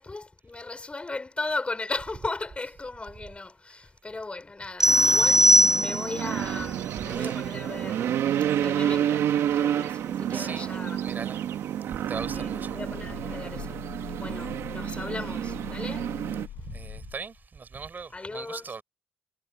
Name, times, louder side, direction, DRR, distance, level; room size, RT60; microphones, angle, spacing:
voice 1, 0.0-11.1 12.3-13.8 14.1-16.1 18.1-18.7, left 3 dB, 25° left, 5.3 m, -37 dB
sound 1, 4.8-6.3, equal, 10° right, 0.7 m, -19 dB
sound 2, 4.9-16.5, right 10 dB, 85° right, 1.3 m, -29 dB
voice 2, 10.3-10.7 11.0-11.4 11.8-12.7 16.7-18.8, right 5 dB, 45° right, 3.8 m, -39 dB
sound 3, 12.1-17.4, left 13 dB, 90° left, 7.2 m, -43 dB
cardioid pair, 65°, 4 cm